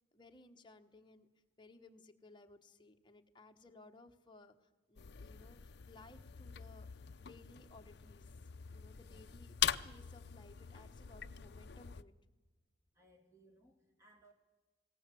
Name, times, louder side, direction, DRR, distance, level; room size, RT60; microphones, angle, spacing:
voice 1, 0.1-1.3 1.6-6.9 7.2-8.3 8.7-9.6 9.8-12.1, left 2 dB, 25° left, 5 dB, 1.2 m, -60 dB
sound 1, 5.0-12.0, left 9 dB, 55° left, 0.6 m, -43 dB
voice 2, 12.9-14.3, right 1 dB, 15° right, 3 dB, 2.7 m, -66 dB
19.5 x 17.5 x 7.7 m, 1.3 s
head